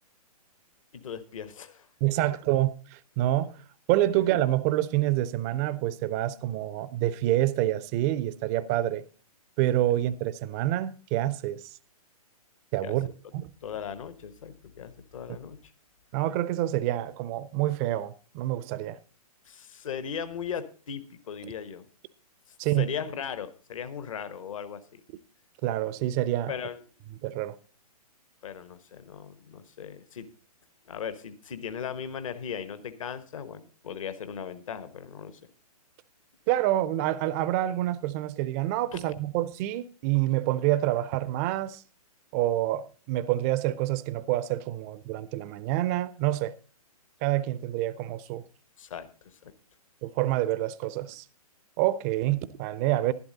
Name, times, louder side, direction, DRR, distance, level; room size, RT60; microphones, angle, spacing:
voice 1, 0.9-1.9 12.8-13.0 13.6-15.6 19.5-21.9 22.8-25.0 26.5-26.8 28.4-30.3 30.9-35.4 38.9-39.0 48.8-49.5, left 7 dB, 60° left, 1.1 m, -38 dB
voice 2, 2.0-3.6 3.9-9.0 9.6-11.6 12.7-13.5 16.1-19.0 22.6-22.9 25.6-26.5 27.2-27.5 36.5-41.8 42.3-46.5 47.2-48.5 50.0-51.2 51.8-53.1, right 14 dB, 25° right, 0.5 m, -27 dB
11.5 x 11.0 x 3.9 m
figure-of-eight pair, 125°, 20 cm